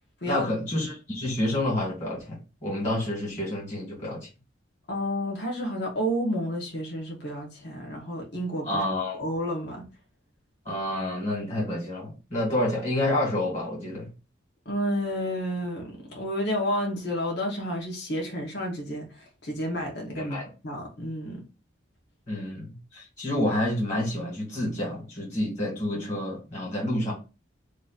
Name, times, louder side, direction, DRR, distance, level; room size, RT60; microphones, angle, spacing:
voice 1, 0.2-4.3 8.6-9.2 10.7-14.1 20.2-20.5 22.3-27.1, left 1 dB, 40° left, 1.8 m, -29 dB
voice 2, 4.9-8.8 9.2-9.9 14.6-21.4, equal, 60° left, 1.2 m, -30 dB
3.0 x 2.6 x 3.9 m
head